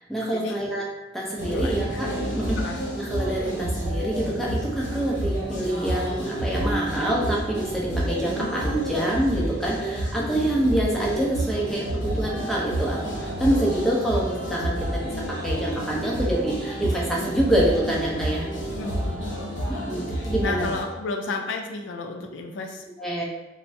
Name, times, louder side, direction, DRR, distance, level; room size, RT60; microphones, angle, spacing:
voice 1, 0.1-0.9 1.1-2.6 2.9-18.5 19.7-20.7 23.0-23.2, right 1 dB, ahead, -4 dB, 0.5 m, -26 dB
sound 1, 1.4-20.8, right 1 dB, 70° left, 0.7 m, -29 dB
voice 2, 1.5-2.1 2.6-2.8 18.7-19.2 19.7-20.0 20.4-22.8, left 3 dB, 85° left, 3 dB, 0.4 m, -32 dB
3.2 x 2.0 x 2.6 m, 1.0 s
head